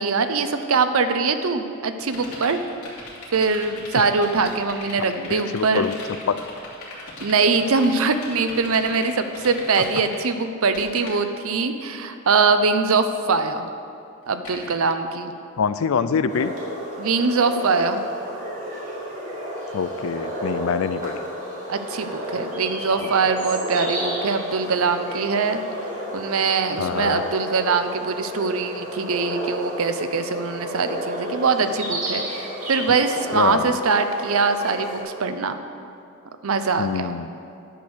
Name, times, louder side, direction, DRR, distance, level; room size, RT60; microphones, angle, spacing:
voice 1, 0.0-2.6 3.3-5.9 7.2-13.7 14.3-15.3 17.0-18.0 21.7-25.6 26.1-35.6 36.4-37.1, right 4 dB, 70° right, 9 dB, 0.6 m, -22 dB
sound 1, 2.0-10.2 10.5-11.2 14.4-14.7, left 3 dB, 85° left, 2.6 m, -38 dB
voice 2, 5.3-5.9 6.3-6.4 15.6-16.5 19.7-21.2 23.0-23.1 26.8-27.2 33.3-33.8 36.8-37.3, left 6 dB, 65° left, 13 dB, 0.4 m, -25 dB
sound 2, 16.3-35.0, equal, 35° right, 2.1 m, -32 dB
10.0 x 6.2 x 6.5 m, 2.5 s
head